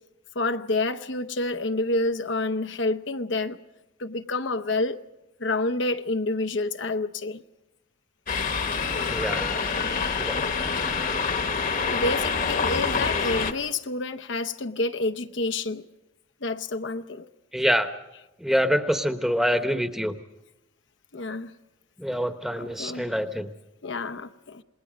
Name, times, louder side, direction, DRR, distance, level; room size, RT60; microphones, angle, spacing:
voice 1, 0.3-3.6 4.0-5.0 5.4-7.4 11.9-15.8 16.4-17.3 21.1-21.5 22.6-23.1 23.8-24.6, left 2 dB, 70° left, 0.8 m, -28 dB
sound 1, 8.3-13.5, left 5 dB, 45° left, 1.3 m, -26 dB
voice 2, 9.1-9.6 10.2-10.4 17.5-17.9 18.4-20.2 22.0-23.5, equal, ahead, 1.0 m, -25 dB
28.0 x 20.5 x 5.1 m
head